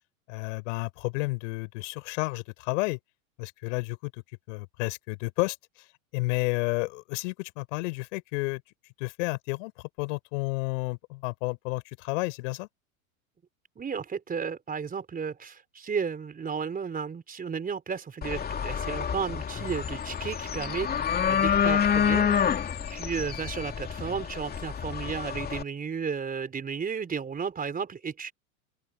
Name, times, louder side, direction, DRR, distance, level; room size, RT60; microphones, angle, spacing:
voice 1, 0.3-3.0 3.4-4.1 4.5-5.6 6.1-8.6 9.0-9.7 10.0-12.7, left 26 dB, 60° left, 5.5 m, -31 dB
voice 2, 13.8-22.4 22.9-28.3, right 6 dB, 20° right, 4.5 m, -33 dB
sound 1, 18.2-25.6, left 7 dB, 20° left, 2.8 m, -28 dB
open air
hypercardioid pair, 105°, 42 cm